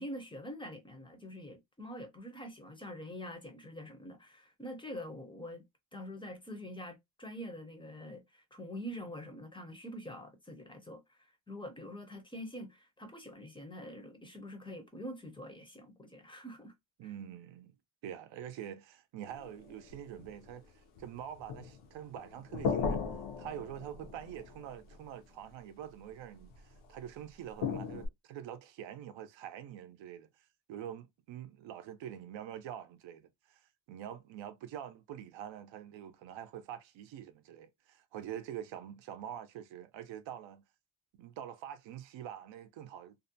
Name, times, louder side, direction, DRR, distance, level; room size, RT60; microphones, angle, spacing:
voice 1, 0.0-5.6 5.9-16.7 17.0-17.1, equal, 10° left, 0.5 m, -45 dB
voice 2, 17.0-17.7 18.0-23.0 23.4-30.3 30.7-40.6 41.2-43.2, right 10 dB, 70° right, 0.6 m, -45 dB
sound 1, 19.3-20.5 21.0-21.9 22.1-25.0 26.5-26.6 27.6-28.1, left 5 dB, 80° left, 0.7 m, -37 dB
2.6 x 2.1 x 2.6 m
cardioid pair, 125°, 47 cm